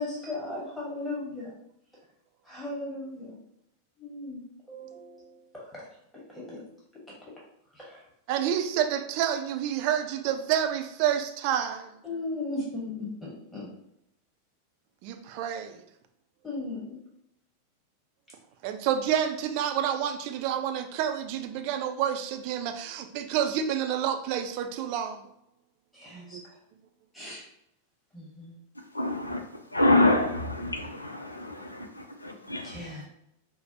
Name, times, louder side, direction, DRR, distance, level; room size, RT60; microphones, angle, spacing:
voice 1, 0.0-1.5 2.4-3.4 4.0-4.4 4.7-5.9 6.1-6.6 6.9-7.3 7.7-8.1 8.4-8.5 12.0-13.7 16.4-17.0 25.9-26.6 27.1-27.4 28.1-28.6 32.6-33.1, left 2 dB, 10° left, -6 dB, 1.3 m, -37 dB
voice 2, 8.3-11.9 15.0-15.8 18.6-25.2 26.3-26.4, right 9 dB, 45° right, 7 dB, 0.4 m, -29 dB
voice 3, 28.9-29.4 29.7-32.8, left 2 dB, 85° left, 5 dB, 0.4 m, -26 dB
4.7 x 2.0 x 2.8 m, 0.78 s
figure-of-eight pair, 90°, 0 cm